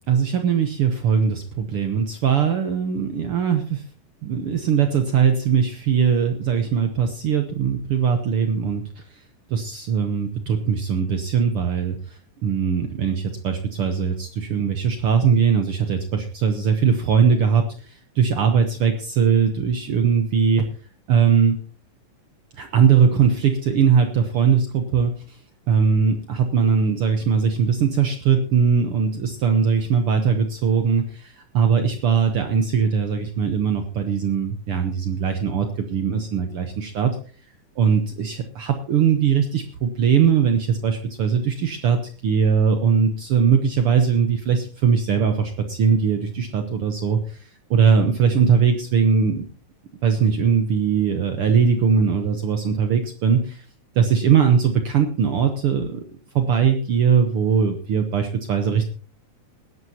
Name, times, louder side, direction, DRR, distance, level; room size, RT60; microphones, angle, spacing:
voice 1, 0.1-3.8 4.2-9.0 9.5-12.0 12.4-20.7 21.1-21.6 22.6-25.1 25.7-37.2 37.8-47.4 47.7-49.5 50.0-53.6 53.9-56.0 56.3-58.9, right 6 dB, 85° right, 6 dB, 1.2 m, -20 dB
20.5 x 11.0 x 2.9 m, 0.41 s
omnidirectional pair, 4.0 m